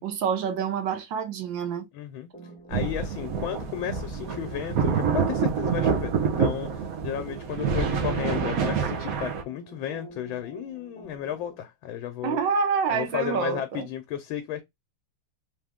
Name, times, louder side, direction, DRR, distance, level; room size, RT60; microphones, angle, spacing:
voice 1, 0.0-1.9 12.2-13.9, right 6 dB, 70° right, 1.4 m, -27 dB
voice 2, 1.9-2.3 2.7-12.4 12.9-14.6, left 10 dB, 85° left, 1.4 m, -33 dB
sound 1, 2.3-11.6, right 2 dB, 5° left, 1.4 m, -46 dB
sound 2, 2.7-9.4, right 6 dB, 55° right, 1.1 m, -27 dB
3.9 x 3.0 x 3.5 m
omnidirectional pair, 2.2 m